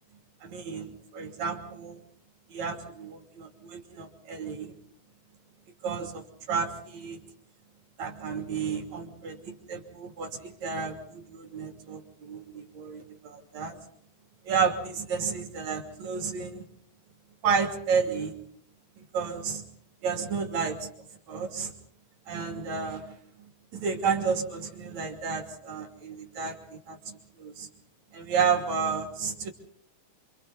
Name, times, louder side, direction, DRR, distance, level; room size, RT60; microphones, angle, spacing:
voice 1, 0.4-2.0 2.5-4.7 5.8-7.2 8.0-13.8 14.5-16.7 17.4-18.4 19.0-19.6 20.0-20.9 21.3-21.7 22.3-27.7 28.1-29.5, right 6 dB, 65° right, 4 dB, 4.2 m, -31 dB
29.5 x 26.5 x 4.1 m, 0.66 s
omnidirectional pair, 3.5 m